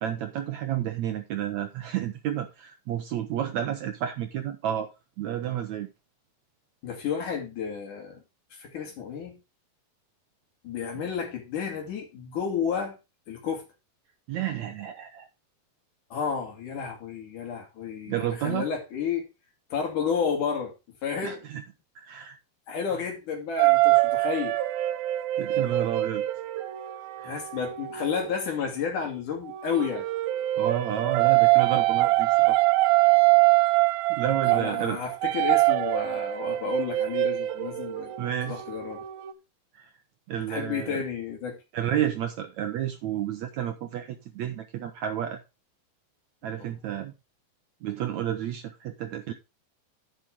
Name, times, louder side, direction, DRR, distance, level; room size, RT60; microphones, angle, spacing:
voice 1, 0.0-4.9 5.2-5.9 14.3-15.3 18.1-18.7 21.2-21.6 22.0-22.4 25.4-26.2 27.2-27.4 30.6-32.6 34.1-35.0 38.2-38.6 39.7-39.9 40.3-41.0 41.7-45.4 46.4-47.1 47.8-49.3, right 10 dB, 70° right, 1.8 m, -31 dB
voice 2, 6.8-8.2 8.5-9.4 10.6-13.0 13.3-13.7 16.1-19.3 19.7-20.7 21.0-21.4 22.7-24.5 27.2-30.1 34.5-38.1 38.5-39.0 40.5-41.6 46.6-46.7, left 6 dB, 60° left, 4.1 m, -31 dB
sound 1, 23.6-28.3 29.5-39.3, right 18 dB, 90° right, 2.7 m, -24 dB
10.5 x 8.1 x 3.6 m
omnidirectional pair, 4.1 m